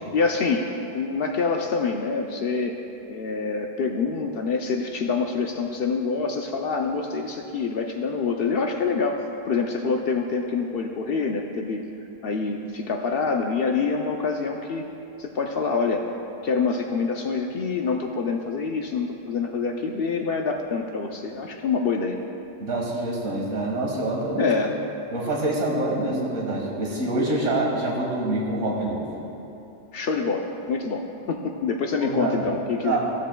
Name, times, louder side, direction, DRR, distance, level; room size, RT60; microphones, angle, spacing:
voice 1, 0.1-2.8 3.1-11.8 12.2-14.9 15.2-16.1 16.4-22.2 24.4-24.7 29.9-33.0, left 4 dB, 60° left, 2 dB, 0.6 m, -26 dB
voice 2, 22.6-24.5 25.1-29.1 32.0-32.5 32.8-33.0, right 2 dB, 75° right, -2 dB, 1.7 m, -26 dB
14.5 x 7.4 x 2.2 m, 3.0 s
omnidirectional pair, 1.3 m